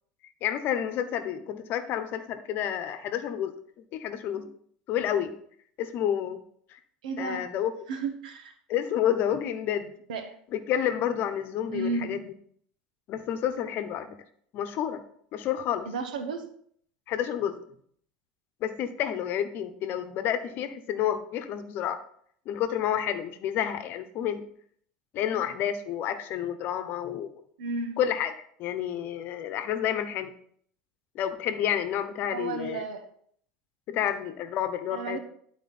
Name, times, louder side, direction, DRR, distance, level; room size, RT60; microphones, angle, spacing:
voice 1, 0.4-3.6 3.9-4.5 4.9-5.3 5.8-6.4 7.2-7.7 8.7-9.9 10.5-12.2 13.1-14.2 14.5-15.0 15.3-15.9 17.1-17.6 18.6-22.0 22.5-24.4 25.1-27.3 28.0-28.3 28.6-30.3 31.1-32.8 33.9-35.2, left 10 dB, 55° left, 11 dB, 1.0 m, -29 dB
voice 2, 7.0-7.5 7.9-8.5 10.1-10.4 11.7-12.2 15.8-16.5 27.6-28.0 32.3-33.0 34.9-35.2, right 4 dB, 85° right, 7 dB, 1.3 m, -33 dB
12.0 x 4.4 x 4.3 m, 0.63 s
hypercardioid pair, 85°, 4 cm